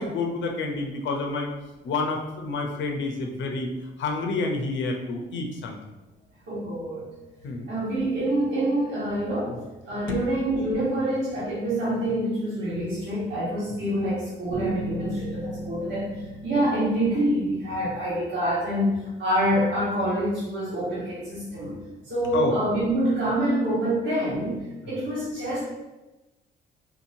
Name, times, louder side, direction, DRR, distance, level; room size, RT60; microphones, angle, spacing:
voice 1, 0.0-1.5 1.8-3.7 4.0-5.8 7.4-7.7 10.1-10.3 22.3-22.6 24.9-25.0, left 3 dB, 70° left, 2 dB, 0.7 m, -29 dB
voice 2, 6.5-7.1 7.7-9.5 9.9-21.8 22.0-25.6, right 1 dB, 65° right, -10 dB, 1.5 m, -26 dB
sound 1, 14.5-18.9, right 1 dB, 15° left, 1.0 m, -37 dB
3.8 x 2.9 x 2.7 m, 1.1 s
cardioid pair, 90°, 20 cm